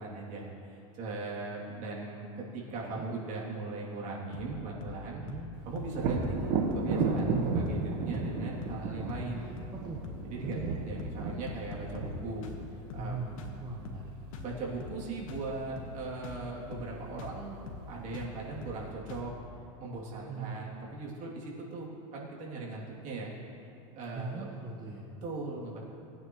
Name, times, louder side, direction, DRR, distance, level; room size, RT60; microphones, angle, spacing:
voice 1, 0.0-5.2 5.7-9.5 10.2-10.6 10.8-12.5 12.9-13.5 14.4-17.6 17.9-19.3 19.8-23.3 24.0-24.5 25.2-25.8, right 3 dB, 45° right, -4 dB, 3.0 m, -39 dB
sound 1, 4.3-4.5 4.8-5.0 5.3-5.5 5.8-6.0 6.2-6.4 6.7-6.9 7.2-7.4 7.7-7.9 8.1-8.4 8.6-8.8 9.1-9.3 9.6-9.8 10.0-10.3 10.5-10.7 11.0-11.2 11.5-12.2 12.4-12.6 12.9-13.1 13.4-13.6 13.8-14.1 14.3-14.5 14.8-15.0 15.3-15.5 15.8-16.0 16.2-16.4 16.7-16.9 17.2-17.4 17.7-17.9 18.1-18.3 18.6-18.8 19.1-19.3, left 4 dB, 75° left, 1.6 m, -43 dB
Thunder, 5.9-13.6 17.2-17.3 17.8-18.7, right 4 dB, 60° right, 1.5 m, -33 dB
voice 2, 9.3-10.0 10.4-10.8 13.0-13.3 13.6-14.1 20.3-20.7 24.1-25.1, right 4 dB, 25° right, -2 dB, 1.3 m, -40 dB
19.5 x 9.4 x 3.2 m, 2.9 s
supercardioid pair, 120°, 17 cm